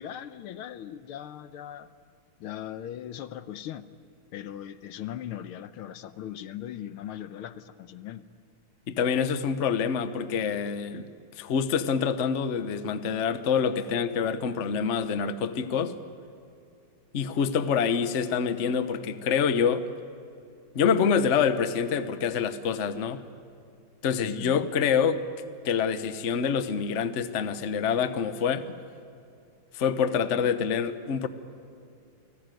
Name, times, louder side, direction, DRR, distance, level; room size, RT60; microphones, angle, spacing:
voice 1, 0.0-1.9 2.4-3.9 4.3-8.3 24.2-24.7, left 11 dB, 80° left, 13 dB, 1.7 m, -39 dB
voice 2, 8.9-11.1 11.4-15.9 17.1-19.9 20.7-23.2 24.0-25.2 25.6-28.7 29.7-31.3, left 6 dB, 45° left, 11 dB, 1.0 m, -26 dB
29.0 x 19.5 x 9.2 m, 2.6 s
omnidirectional pair, 2.4 m